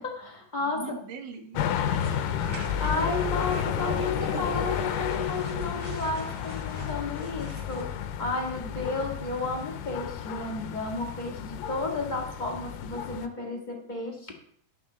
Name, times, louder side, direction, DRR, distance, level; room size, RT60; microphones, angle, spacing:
voice 1, 0.0-1.0 2.8-14.3, left 2 dB, 25° left, 0 dB, 0.9 m, -32 dB
voice 2, 0.6-2.1 8.7-9.1 9.5-9.9, right 5 dB, 80° right, 5 dB, 3.0 m, -43 dB
sound 1, 1.5-13.3, left 9 dB, 85° left, 2.3 m, -32 dB
sound 2, 1.9-7.8, right 3 dB, 40° right, 1.6 m, -43 dB
12.5 x 5.3 x 6.8 m, 0.63 s
omnidirectional pair, 3.8 m